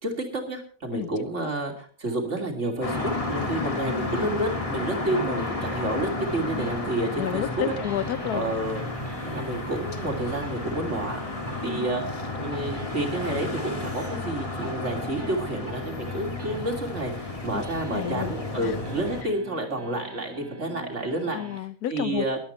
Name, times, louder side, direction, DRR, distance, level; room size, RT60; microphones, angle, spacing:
voice 1, 0.0-7.6 8.3-8.8 9.2-11.2 11.6-12.0 12.3-21.4 21.9-22.4, right 1 dB, 45° right, 3 dB, 3.2 m, -30 dB
sound 1, 2.1-21.6, right 3 dB, 20° right, 0.7 m, -43 dB
sound 2, 2.8-19.2, left 2 dB, 20° left, 1.8 m, -32 dB
voice 2, 3.5-4.2 7.1-8.5 11.6-11.9 17.5-17.6 17.9-18.3 18.6-18.8 21.3-22.3, left 11 dB, 75° left, 15 dB, 1.4 m, -31 dB
22.0 x 8.7 x 4.4 m, 0.42 s
omnidirectional pair, 1.7 m